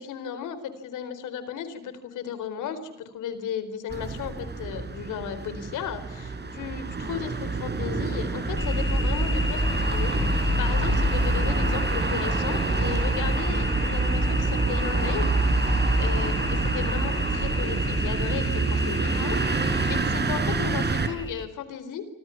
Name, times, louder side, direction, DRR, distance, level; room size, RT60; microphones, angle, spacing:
voice 1, 0.0-15.4 16.0-19.6 19.9-22.1, left 8 dB, 85° left, 12 dB, 4.3 m, -35 dB
sound 1, 3.9-21.1, right 3 dB, 35° right, 6.0 m, -27 dB
sound 2, 8.6-21.5, left 2 dB, 15° left, 5.0 m, -30 dB
29.5 x 25.5 x 5.9 m, 0.91 s
cardioid pair, 90°, 30 cm